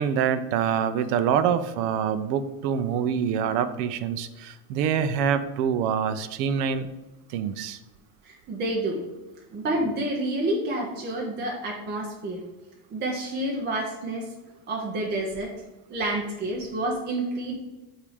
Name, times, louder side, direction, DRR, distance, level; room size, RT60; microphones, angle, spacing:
voice 1, 0.0-6.9 7.3-7.8, right 8 dB, 70° right, 12 dB, 0.7 m, -25 dB
voice 2, 8.2-9.0 9.5-12.4 12.9-14.2 14.7-15.5 15.9-17.6, right 1 dB, 20° right, -2 dB, 0.8 m, -29 dB
8.5 x 2.9 x 4.9 m, 1.0 s
cardioid pair, 170°, 50 cm